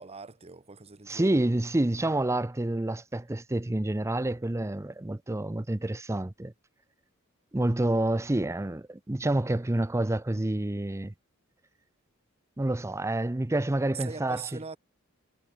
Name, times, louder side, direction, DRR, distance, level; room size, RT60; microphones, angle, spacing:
voice 1, 0.0-1.6 13.9-14.8, right 5 dB, 30° right, 1.0 m, -42 dB
voice 2, 1.1-6.5 7.5-11.1 12.6-14.4, right 1 dB, 15° right, 0.5 m, -28 dB
head